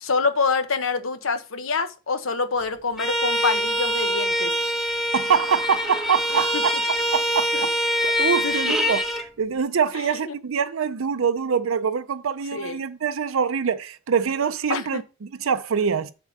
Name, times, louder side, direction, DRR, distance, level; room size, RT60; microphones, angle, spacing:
voice 1, 0.0-4.5 6.3-6.6 7.5-7.7 8.4-8.7 10.2-10.3 12.5-12.8 14.7-15.0, left 4 dB, 75° left, 1.1 m, -26 dB
Bowed string instrument, 3.0-9.3, equal, ahead, 1.1 m, -24 dB
voice 2, 5.1-6.7 7.1-7.7 8.0-16.1, right 6 dB, 80° right, 0.5 m, -24 dB
7.4 x 3.8 x 6.5 m
head